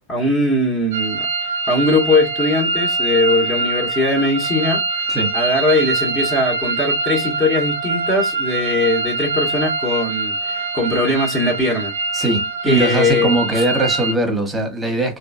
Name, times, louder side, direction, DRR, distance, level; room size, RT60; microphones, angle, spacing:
voice 1, 0.1-1.3 1.7-4.8 5.3-11.9 12.6-13.6, left 2 dB, 20° left, 1.2 m, -20 dB
sound 1, 0.9-14.1, right 3 dB, 60° right, 0.5 m, -23 dB
voice 2, 12.1-15.2, right 2 dB, 10° right, 1.2 m, -20 dB
3.6 x 2.4 x 2.5 m
figure-of-eight pair, 90°, 0 cm